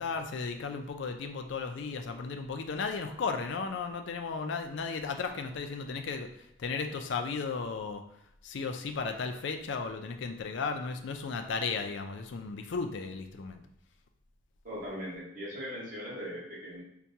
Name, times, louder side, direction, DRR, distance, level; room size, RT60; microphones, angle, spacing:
voice 1, 0.0-8.0 8.4-13.6, left 4 dB, 60° left, 6 dB, 0.4 m, -35 dB
voice 2, 14.6-16.8, equal, 40° right, -8 dB, 1.3 m, -39 dB
5.7 x 2.2 x 2.7 m, 0.77 s
head